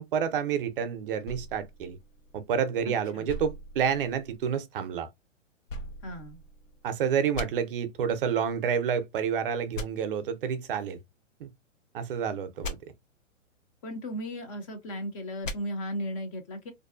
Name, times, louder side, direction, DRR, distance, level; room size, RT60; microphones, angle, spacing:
voice 1, 0.0-2.0 2.3-5.1 6.8-11.0 11.4-11.5 11.9-12.8, right 7 dB, 45° right, 0.5 m, -29 dB
sound 1, 1.2-2.7 3.3-4.5 5.7-6.8 7.3-7.5 9.7-9.9 12.6-12.7 15.4-15.6, left 1 dB, 85° left, 0.8 m, -39 dB
voice 2, 2.9-3.3 6.0-6.4 13.8-16.7, equal, 30° left, 0.5 m, -36 dB
2.5 x 2.3 x 2.3 m
hypercardioid pair, 125°, 38 cm